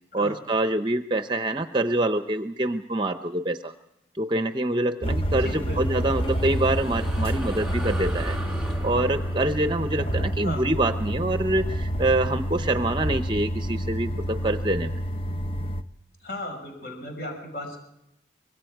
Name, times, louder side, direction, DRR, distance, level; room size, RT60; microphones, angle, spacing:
voice 1, 0.1-3.7 4.1-8.4 8.8-14.9, right 2 dB, 25° right, 8 dB, 0.7 m, -25 dB
sound 1, 5.0-15.8, equal, 30° left, 0.8 m, -28 dB
voice 2, 5.4-5.8 10.4-10.6 16.2-17.8, left 1 dB, 55° left, 3 dB, 5.8 m, -35 dB
sound 2, 5.9-12.6, right 1 dB, 5° right, 1.8 m, -41 dB
25.5 x 22.5 x 4.7 m, 0.85 s
head